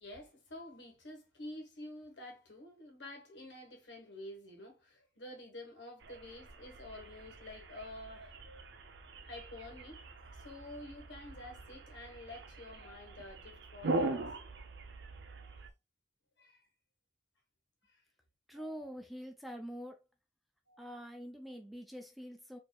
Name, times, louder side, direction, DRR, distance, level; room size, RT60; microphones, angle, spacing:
voice 1, 0.0-8.4 9.2-10.0 10.3-14.3 15.2-15.5 16.4-16.6 17.8-18.0 18.5-18.9 20.7-21.0, left 1 dB, 85° left, 1.4 m, -49 dB
sound 1, 6.0-15.7, right 2 dB, 80° right, 0.6 m, -42 dB
voice 2, 18.5-20.0 20.8-22.6, equal, ahead, 0.5 m, -45 dB
4.4 x 2.9 x 2.3 m
head